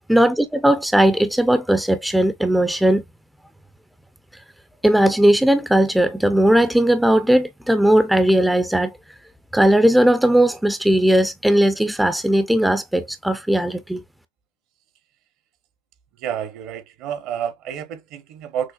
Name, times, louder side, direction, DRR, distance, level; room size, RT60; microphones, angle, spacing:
voice 1, 0.1-3.0 4.8-8.9 9.5-14.0, right 1 dB, 5° right, 0.4 m, -17 dB
voice 2, 16.2-18.7, right 9 dB, 50° right, 0.8 m, -30 dB
6.1 x 2.1 x 2.3 m
supercardioid pair, 115°, 0 cm